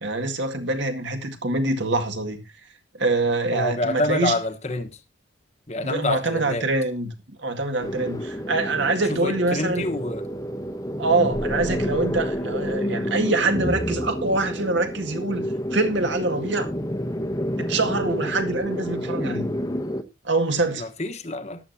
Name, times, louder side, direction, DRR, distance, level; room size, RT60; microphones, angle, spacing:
voice 1, 0.0-2.4 2.9-4.4 5.8-7.1 7.4-9.9 11.0-16.7 17.6-19.5 20.2-20.9, right 2 dB, 65° right, 2.0 m, -25 dB
voice 2, 3.5-4.9 5.7-6.7 9.2-10.2 20.8-21.6, left 2 dB, 35° left, 1.2 m, -27 dB
sound 1, 7.8-20.0, equal, 20° left, 0.9 m, -29 dB
14.0 x 11.0 x 2.8 m
head